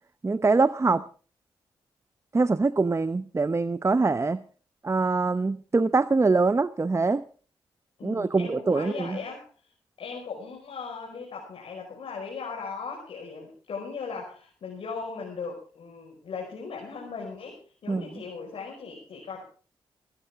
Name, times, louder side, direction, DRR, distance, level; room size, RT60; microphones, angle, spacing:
voice 1, 0.2-1.1 2.3-4.4 4.8-7.3 8.0-9.2 17.9-18.1, right 3 dB, 30° right, 0.8 m, -24 dB
voice 2, 8.0-9.7 10.0-19.4, left 5 dB, 70° left, 5.3 m, -38 dB
22.0 x 14.5 x 3.7 m
supercardioid pair, 45°, 10 cm